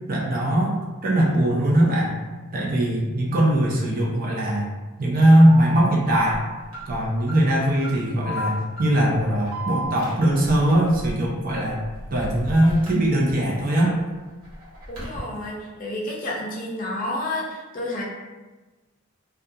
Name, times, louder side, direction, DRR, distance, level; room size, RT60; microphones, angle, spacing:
voice 1, 0.1-2.1 2.5-4.7 5.0-6.4 6.9-11.8 12.1-14.0, right 1 dB, 40° right, -2 dB, 0.5 m, -20 dB
Alarm, 5.4-13.6 14.0-15.2, right 2 dB, 85° right, 1.1 m, -36 dB
sound 1, 8.2-15.2, left 4 dB, 5° left, 0.8 m, -42 dB
voice 2, 14.9-18.0, left 1 dB, 40° left, -4 dB, 0.5 m, -30 dB
2.3 x 2.3 x 2.7 m, 1.2 s
head